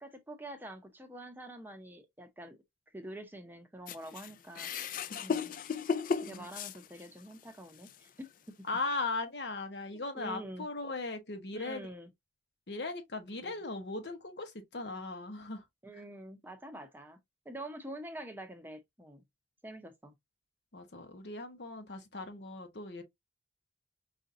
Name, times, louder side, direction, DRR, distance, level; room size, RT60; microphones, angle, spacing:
voice 1, 0.0-2.6 2.9-5.5 6.2-8.7 10.1-10.6 11.5-12.1 13.5-13.6 15.8-17.2 17.4-19.2 19.6-20.1, right 1 dB, 10° right, 0.6 m, -46 dB
sound 1, 3.9-7.3 7.8-8.0 8.9-9.0, left 5 dB, 45° left, 0.3 m, -35 dB
voice 2, 8.6-11.9 12.7-15.6 20.7-23.0, left 3 dB, 65° left, 1.0 m, -38 dB
4.9 x 2.7 x 2.6 m
head